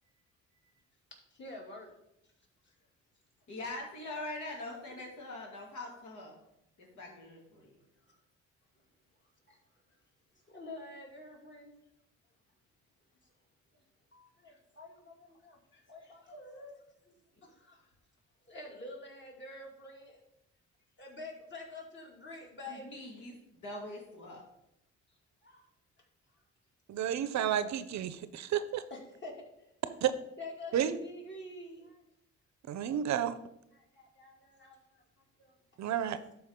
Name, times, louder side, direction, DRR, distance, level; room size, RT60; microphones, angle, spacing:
voice 1, 1.4-1.9 4.9-5.0 10.5-11.7 14.1-16.8 17.4-17.8 18.5-20.2 21.0-23.0 25.4-25.6 27.4-27.8 28.9-29.5 30.4-32.0 33.7-35.0 35.4-35.5, left 2 dB, 40° left, 2.6 m, -47 dB
voice 2, 3.5-6.3 6.8-7.8 22.7-24.4, left 2 dB, 75° left, 2.6 m, -43 dB
voice 3, 26.9-28.8 30.0-30.1 30.7-30.9 32.7-33.3 35.8-36.2, right 10 dB, 65° right, 0.6 m, -31 dB
12.0 x 4.6 x 3.7 m
cardioid pair, 90°, 30 cm